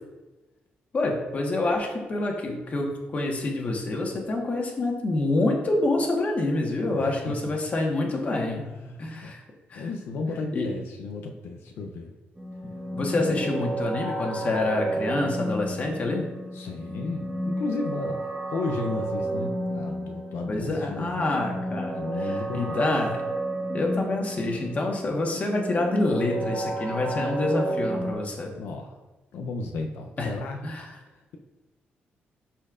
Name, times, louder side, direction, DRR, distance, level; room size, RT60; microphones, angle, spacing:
voice 1, 0.9-8.7 9.0-9.4 9.7-9.9 10.5-10.7 12.9-16.3 20.5-23.2 23.7-28.5 30.2-30.3 30.6-30.8, left 2 dB, 40° left, 1 dB, 1.3 m, -27 dB
voice 2, 7.0-7.5 8.7-9.3 9.7-12.1 16.5-21.3 21.9-22.9 28.5-29.0 29.3-30.6, left 3 dB, 85° left, 2 dB, 0.6 m, -34 dB
sound 1, 12.4-28.1, right 1 dB, 10° right, 1.2 m, -32 dB
12.0 x 4.3 x 2.5 m, 1.1 s
cardioid pair, 125°, 4 cm